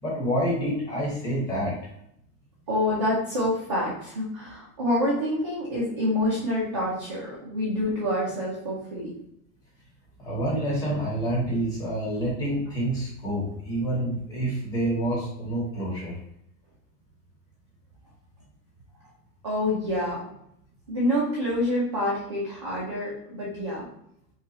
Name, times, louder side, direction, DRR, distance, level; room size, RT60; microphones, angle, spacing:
voice 1, 0.0-1.8 10.2-16.2, right 1 dB, 10° left, -7 dB, 1.0 m, -28 dB
voice 2, 2.7-9.1 19.4-20.2 20.9-23.9, left 1 dB, 20° right, -7 dB, 0.4 m, -27 dB
5.5 x 2.4 x 4.0 m, 0.73 s
supercardioid pair, 180°, 47 cm